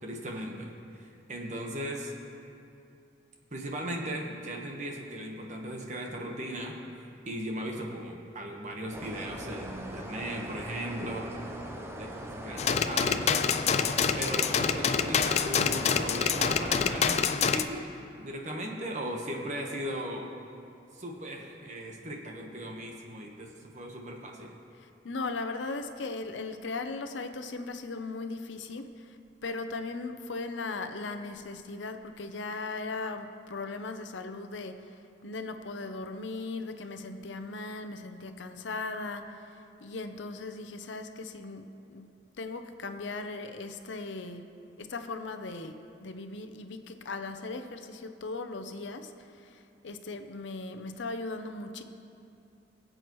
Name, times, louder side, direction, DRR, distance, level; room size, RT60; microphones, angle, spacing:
voice 1, 0.0-2.1 3.5-6.8 7.2-11.3 12.0-13.5 14.1-17.9 18.2-20.3 20.9-24.5, right 1 dB, 40° right, 1 dB, 1.2 m, -37 dB
sound 1, 8.9-17.2, right 1 dB, 15° right, 0.7 m, -41 dB
sound 2, 12.6-17.6, left 6 dB, 35° left, 0.4 m, -26 dB
voice 2, 25.0-29.1 29.4-34.7 35.2-39.2 39.8-41.6 41.9-42.1 42.4-44.4 44.8-45.7 46.0-49.1 49.4-49.6 49.8-51.8, left 3 dB, 80° left, 7 dB, 0.7 m, -38 dB
22.0 x 7.7 x 3.1 m, 2.6 s
head